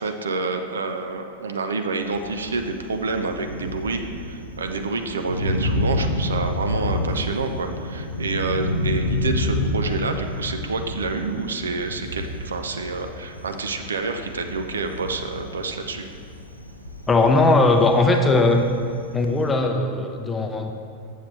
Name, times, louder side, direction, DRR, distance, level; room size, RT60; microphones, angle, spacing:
voice 1, 0.0-16.1, right 3 dB, 70° right, 6 dB, 0.5 m, -28 dB
Thunder, 2.0-19.5, left 1 dB, 90° left, 0.5 m, -29 dB
voice 2, 17.1-18.6 19.1-20.7, left 2 dB, 15° left, 3 dB, 0.6 m, -19 dB
7.3 x 7.1 x 3.1 m, 2.4 s
figure-of-eight pair, 90°, 0 cm